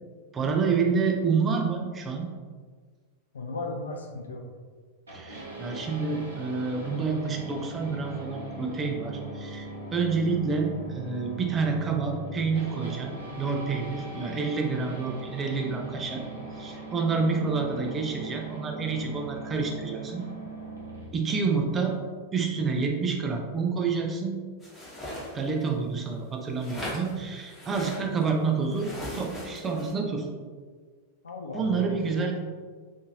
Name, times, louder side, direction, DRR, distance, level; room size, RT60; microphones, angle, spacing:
voice 1, 0.3-2.3 5.1-16.2 16.6-20.2 21.1-22.0 22.3-24.4 25.3-30.3 31.5-32.4, right 5 dB, 20° right, 2 dB, 0.4 m, -28 dB
voice 2, 3.3-4.4 31.2-32.3, left 3 dB, 70° left, 2 dB, 0.4 m, -36 dB
sound 1, 5.1-21.1, right 1 dB, 75° right, 0.7 m, -40 dB
sound 2, 24.6-25.7 26.6-28.3 28.7-29.9, left 1 dB, 10° left, 0.9 m, -39 dB
2.6 x 2.5 x 2.8 m, 1.5 s
figure-of-eight pair, 90°, 0 cm